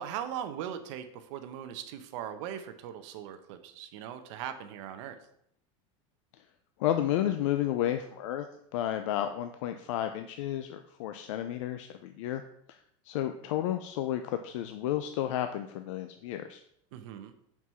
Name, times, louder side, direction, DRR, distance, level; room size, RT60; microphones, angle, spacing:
voice 1, 0.0-5.2 16.9-17.3, right 9 dB, 70° right, 9 dB, 0.9 m, -39 dB
voice 2, 6.8-8.5 8.7-12.4 12.7-12.8 13.1-16.6, left 11 dB, 80° left, 8 dB, 0.5 m, -32 dB
5.9 x 4.7 x 5.5 m, 0.71 s
supercardioid pair, 135°, 16 cm